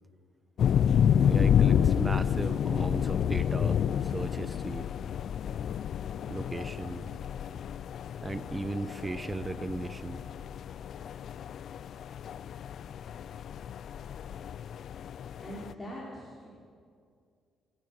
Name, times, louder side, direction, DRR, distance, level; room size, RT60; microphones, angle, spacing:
sound 1, 0.6-15.7, left 8 dB, 65° left, 0.5 m, -29 dB
voice 1, 1.2-4.8 6.3-7.1 8.2-10.2, right 2 dB, 20° right, 14 dB, 1.0 m, -36 dB
voice 2, 15.4-16.5, equal, 15° left, -6 dB, 5.2 m, -42 dB
27.5 x 14.0 x 7.6 m, 2.2 s
cardioid pair, 90°, 0 cm